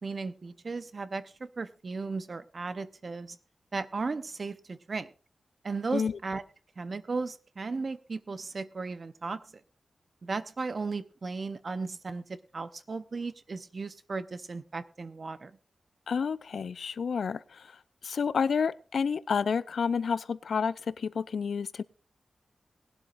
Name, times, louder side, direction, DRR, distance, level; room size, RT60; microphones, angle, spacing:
voice 1, 0.0-3.4 3.7-5.1 5.6-6.4 6.8-9.4 10.2-15.6, right 4 dB, 45° right, 0.8 m, -36 dB
voice 2, 16.1-21.8, left 6 dB, 90° left, 0.5 m, -30 dB
19.5 x 11.5 x 2.5 m
wide cardioid pair, 125°, 0 cm